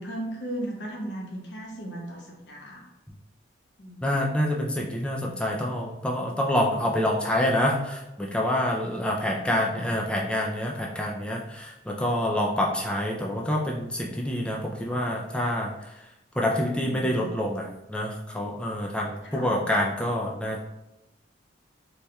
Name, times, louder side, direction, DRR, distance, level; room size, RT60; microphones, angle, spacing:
voice 1, 0.0-2.9 3.8-4.0 9.4-9.9 16.6-17.3 19.2-19.6, right 1 dB, 70° left, -1 dB, 0.9 m, -36 dB
voice 2, 4.0-15.7 16.4-20.6, left 1 dB, 5° left, -1 dB, 0.4 m, -27 dB
4.1 x 3.2 x 2.3 m, 0.90 s
head